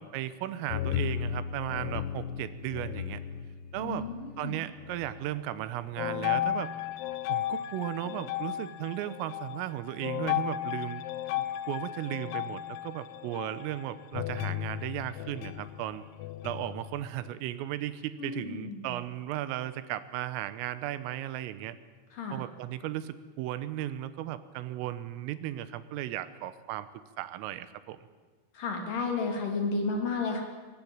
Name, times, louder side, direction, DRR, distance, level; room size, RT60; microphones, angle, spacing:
voice 1, 0.0-3.2 3.7-4.1 4.4-6.7 7.3-11.0 11.4-16.1 16.4-21.8 22.3-26.9 27.2-28.0, right 13 dB, 85° right, 13 dB, 3.6 m, -36 dB
sound 1, 0.7-4.5 4.8-5.5 6.0-17.3, left 12 dB, 85° left, 3.6 m, -35 dB
voice 2, 3.8-4.6 18.2-19.0 22.1-22.4 28.5-30.4, left 4 dB, 45° left, 2 dB, 4.3 m, -32 dB
22.5 x 19.0 x 8.8 m, 1.4 s
omnidirectional pair, 5.9 m